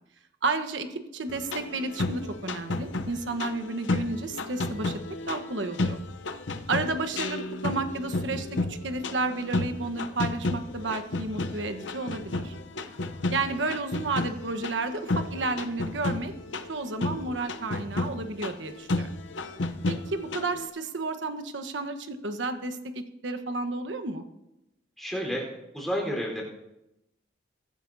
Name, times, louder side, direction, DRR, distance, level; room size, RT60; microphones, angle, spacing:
voice 1, 0.4-0.9 1.1-5.0 5.3-6.0 6.7-12.5 13.3-16.3 16.7-19.1 19.9-22.8 23.2-24.2, right 3 dB, 85° right, 8 dB, 1.2 m, -31 dB
sound 1, 1.3-20.7, left 2 dB, 90° left, 0.8 m, -32 dB
voice 2, 25.0-25.5 25.7-26.4, equal, ahead, -2 dB, 4.0 m, -30 dB
23.0 x 11.5 x 2.7 m, 0.91 s
head